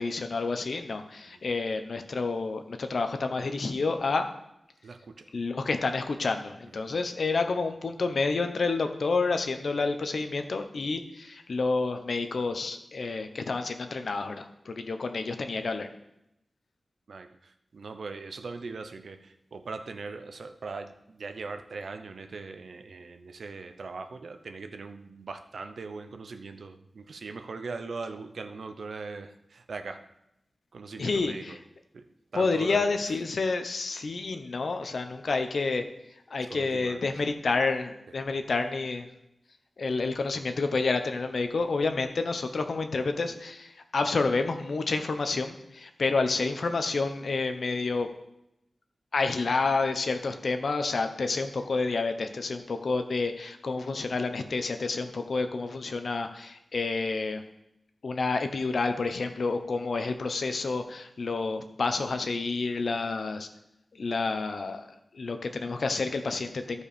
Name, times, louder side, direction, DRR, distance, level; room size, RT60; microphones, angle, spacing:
voice 1, 0.0-4.3 5.3-15.9 31.0-31.6 32.3-35.9 36.3-39.1 39.8-48.1 49.1-57.4 58.0-63.5 64.0-64.8 65.1-66.8, left 3 dB, 65° left, 7 dB, 0.9 m, -29 dB
voice 2, 4.8-5.3 17.1-30.0 30.7-31.6 31.9-33.1 36.5-37.0, right 4 dB, 80° right, 7 dB, 0.8 m, -40 dB
14.0 x 4.8 x 5.1 m, 0.83 s
wide cardioid pair, 120°, 0 cm